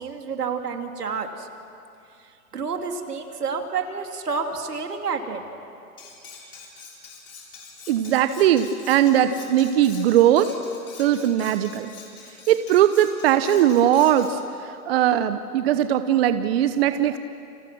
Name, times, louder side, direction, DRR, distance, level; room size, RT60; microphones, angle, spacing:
voice 1, 0.0-1.5 2.5-5.4, right 5 dB, 85° right, 5 dB, 2.8 m, -29 dB
Cutlery silverware, 6.0-14.4, left 5 dB, 70° left, 7.0 m, -45 dB
voice 2, 7.9-10.5 11.0-11.9 12.5-17.2, right 11 dB, 40° right, 11 dB, 0.9 m, -20 dB
29.0 x 26.0 x 6.2 m, 2.6 s
hypercardioid pair, 140°, 46 cm